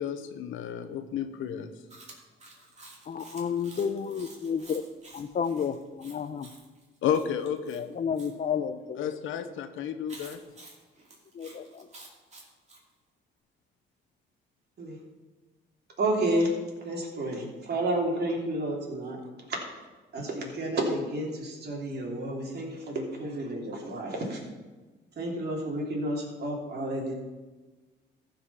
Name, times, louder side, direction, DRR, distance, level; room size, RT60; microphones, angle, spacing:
voice 1, 0.0-1.7 7.0-7.8 9.0-10.4, left 8 dB, 85° left, 1.0 m, -31 dB
Chewing mastication, 1.9-8.3 10.1-12.8, right 2 dB, 35° right, 2.6 m, -51 dB
voice 2, 3.0-4.8 5.1-6.5 7.7-9.1 11.3-11.9, left 7 dB, 40° left, 0.7 m, -31 dB
voice 3, 16.0-16.5 16.8-19.2 19.5-19.6 20.1-24.4 25.2-27.1, right 1 dB, 55° right, 3.1 m, -30 dB
14.5 x 5.3 x 5.7 m
cardioid pair, 90°, 20 cm